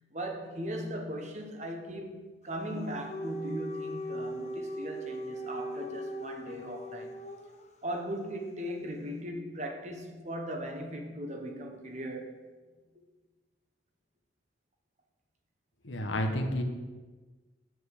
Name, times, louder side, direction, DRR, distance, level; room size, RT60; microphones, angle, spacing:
voice 1, 0.1-7.2 7.8-12.4, equal, 35° right, 3 dB, 1.2 m, -38 dB
Dog, 2.5-7.7, equal, 35° left, 0.7 m, -39 dB
voice 2, 15.8-16.6, left 1 dB, 80° left, 4 dB, 1.3 m, -30 dB
7.8 x 7.5 x 6.6 m, 1.3 s
head